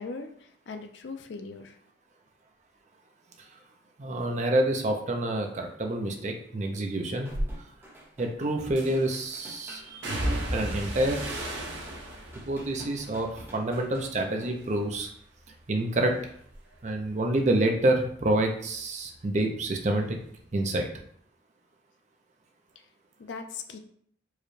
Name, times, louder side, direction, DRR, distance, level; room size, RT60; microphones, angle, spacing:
voice 1, 0.0-1.8 23.2-23.8, left 4 dB, 70° left, 6 dB, 0.4 m, -39 dB
voice 2, 4.0-7.3 7.6-7.7 8.2-10.0 10.5-11.2 12.5-15.1 15.7-16.3 16.8-20.2 20.5-20.9, right 1 dB, 35° right, 3 dB, 0.5 m, -27 dB
sound 1, 7.3-14.5, right 1 dB, 10° right, 0.9 m, -49 dB
sound 2, 7.3-7.5 8.8-9.2 10.0-14.3 14.6-15.2 15.6-18.9 19.1-20.3 20.5-20.7, right 1 dB, 70° right, 0.7 m, -36 dB
4.7 x 2.2 x 3.1 m, 0.63 s
head